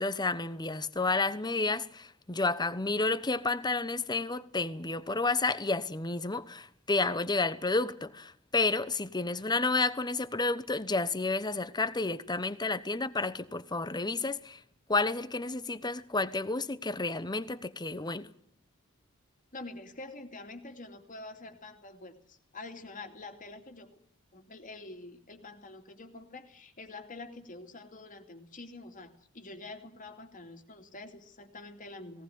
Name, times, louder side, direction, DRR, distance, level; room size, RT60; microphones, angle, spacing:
voice 1, 0.0-14.6 14.9-18.3, left 3 dB, 20° left, 1.1 m, -31 dB
voice 2, 19.5-23.9 24.3-32.2, left 2 dB, 40° left, 2.6 m, -46 dB
19.0 x 18.5 x 9.4 m
head